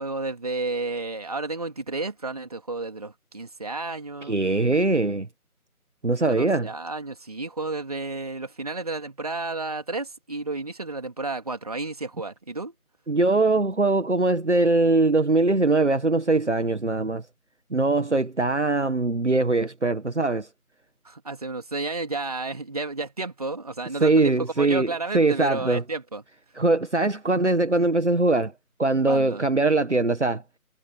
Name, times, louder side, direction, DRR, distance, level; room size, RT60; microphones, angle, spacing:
voice 1, 0.0-4.4 6.3-12.7 21.0-26.2 29.1-29.4, right 3 dB, 25° right, 3.2 m, -32 dB
voice 2, 4.3-5.3 6.0-6.7 13.1-17.2 17.7-20.5 24.0-25.8 26.6-28.5 28.8-30.4, right 2 dB, 50° right, 1.8 m, -22 dB
figure-of-eight pair, 170°, 44 cm